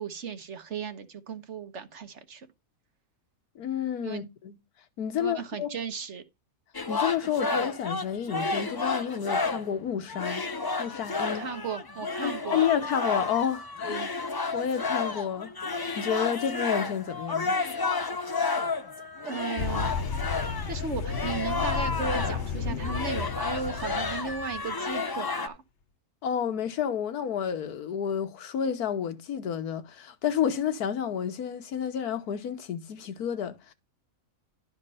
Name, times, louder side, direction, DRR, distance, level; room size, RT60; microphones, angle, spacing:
voice 1, 0.0-2.5 4.0-4.3 5.2-6.2 11.3-12.6 13.9-14.1 18.4-18.5 19.2-20.0 20.7-25.6, right 5 dB, 55° right, 1.3 m, -36 dB
voice 2, 3.5-4.6 5.0-5.7 6.9-10.4 10.8-11.4 12.2-15.5 16.0-17.6 26.2-33.7, left 8 dB, 90° left, 1.5 m, -30 dB
sound 1, 6.7-9.7 10.1-22.5 22.8-25.5, left 4 dB, 35° left, 0.3 m, -31 dB
sound 2, 19.6-24.7, left 5 dB, 55° left, 1.1 m, -33 dB
11.5 x 4.4 x 5.5 m
omnidirectional pair, 1.6 m